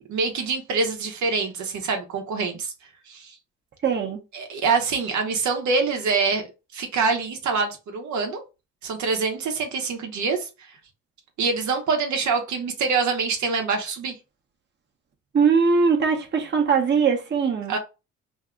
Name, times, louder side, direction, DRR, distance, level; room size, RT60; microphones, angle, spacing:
voice 1, 0.0-2.7 3.1-3.3 4.3-6.4 6.7-8.4 8.8-10.5 11.4-14.1 17.7-17.8, right 4 dB, 70° right, 0.9 m, -25 dB
voice 2, 3.8-4.2 15.3-17.8, right 5 dB, 35° right, 0.9 m, -21 dB
2.7 x 2.2 x 3.6 m
cardioid pair, 90°, 30 cm